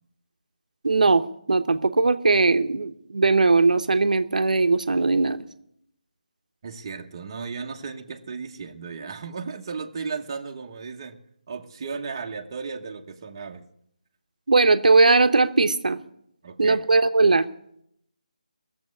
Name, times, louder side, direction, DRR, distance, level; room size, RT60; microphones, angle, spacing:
voice 1, 0.8-5.4 14.5-16.0 16.6-17.4, right 3 dB, 70° right, 9 dB, 0.9 m, -19 dB
voice 2, 6.6-11.2 11.5-13.6 16.4-16.8, right 5 dB, 30° right, 2 dB, 1.0 m, -35 dB
18.5 x 7.5 x 9.6 m, 0.73 s
figure-of-eight pair, 170°, 4 cm